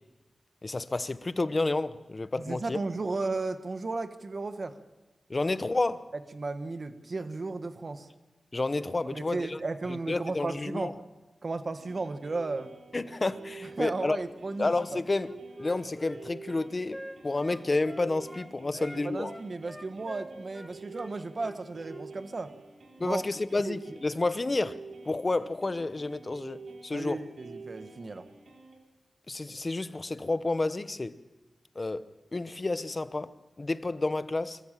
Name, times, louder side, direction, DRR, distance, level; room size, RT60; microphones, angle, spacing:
voice 1, 0.6-2.8 5.3-6.1 8.5-9.6 9.9-10.9 12.9-14.2 14.6-15.3 15.6-19.3 23.0-27.2 29.3-31.2 31.7-34.6, left 2 dB, 40° left, 0.9 m, -30 dB
voice 2, 2.3-4.8 6.3-8.1 9.1-11.0 11.4-12.7 13.8-15.0 18.7-22.5 23.0-23.2 23.6-23.8 26.9-28.3, right 3 dB, 55° right, 1.4 m, -34 dB
sound 1, 11.7-28.8, right 4 dB, 85° right, 4.1 m, -48 dB
Wind instrument woodwind instrument, 15.1-18.5 18.8-22.1, equal, 5° left, 2.1 m, -45 dB
25.0 x 14.5 x 7.4 m
cardioid pair, 60°, 0 cm